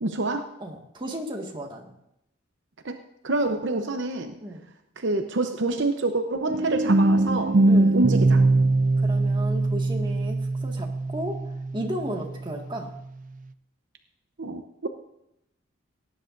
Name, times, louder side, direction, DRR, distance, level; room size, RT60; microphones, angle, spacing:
voice 1, 0.0-0.6 2.8-3.0 3.2-4.4 5.0-7.6 7.9-8.4 14.4-14.9, right 2 dB, 65° right, 6 dB, 0.8 m, -27 dB
voice 2, 0.6-1.9 4.4-4.7 7.7-8.0 9.0-12.9, equal, 25° right, 1 dB, 1.8 m, -34 dB
sound 1, 6.5-12.3, right 2 dB, 40° right, 0.4 m, -22 dB
18.0 x 10.0 x 2.6 m, 0.83 s
head